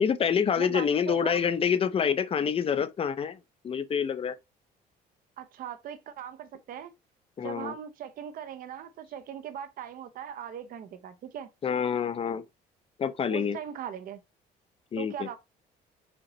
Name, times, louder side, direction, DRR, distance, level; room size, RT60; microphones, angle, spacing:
voice 1, 0.0-3.4 3.6-4.4 7.4-7.7 11.6-12.4 13.0-13.6 14.9-15.3, left 7 dB, 35° left, 0.5 m, -27 dB
voice 2, 0.6-1.4 5.4-6.9 7.4-11.5 13.3-14.2 15.0-15.4, right 9 dB, 55° right, 0.7 m, -40 dB
5.1 x 2.8 x 3.1 m
cardioid pair, 110°, 17 cm